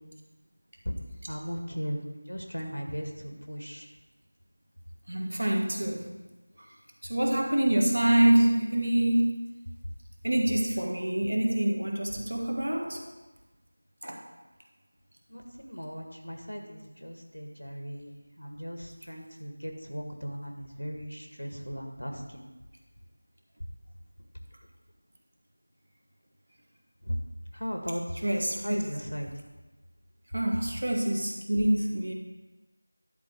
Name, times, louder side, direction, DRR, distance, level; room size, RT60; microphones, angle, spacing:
voice 1, 1.3-3.9 15.3-22.4 27.0-27.2 27.5-28.0 28.6-29.3, equal, 90° left, 2 dB, 1.8 m, -37 dB
voice 2, 5.1-6.1 7.1-9.5 10.2-13.0 14.0-14.2 28.2-28.8 30.3-32.1, right 1 dB, 65° right, 2 dB, 1.6 m, -26 dB
10.5 x 4.4 x 6.1 m, 1.2 s
figure-of-eight pair, 170°, 0 cm